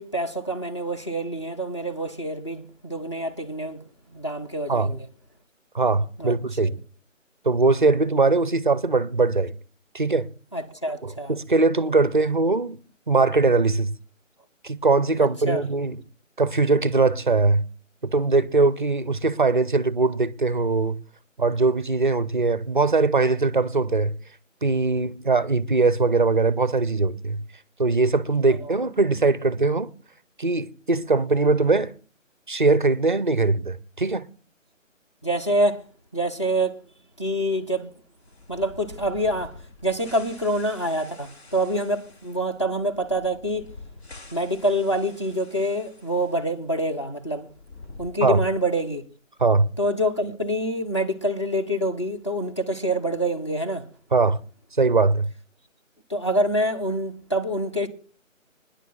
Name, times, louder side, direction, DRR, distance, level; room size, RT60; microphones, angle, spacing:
voice 1, 0.0-3.8 4.1-5.1 6.2-6.4 6.6-6.7 10.5-11.3 15.2-15.6 28.6-28.8 35.2-35.8 36.1-36.8 37.2-37.9 38.5-39.6 39.8-43.6 44.3-47.5 48.0-49.0 49.8-53.8 56.1-57.9, equal, 20° left, 0.7 m, -26 dB
voice 2, 5.7-6.8 7.4-9.5 9.9-10.3 11.0-12.8 13.1-14.0 14.6-16.0 16.4-17.6 18.0-21.0 21.4-24.1 24.6-27.4 27.8-29.9 30.4-31.9 32.5-34.3 48.2-48.4 49.4-49.7 54.1-54.4 54.8-55.3, right 3 dB, 40° right, 0.5 m, -21 dB
sound 1, 38.2-46.4 46.7-46.8 47.4-48.8, left 3 dB, 55° left, 1.8 m, -47 dB
25.0 x 10.0 x 2.3 m
figure-of-eight pair, 165°, 39 cm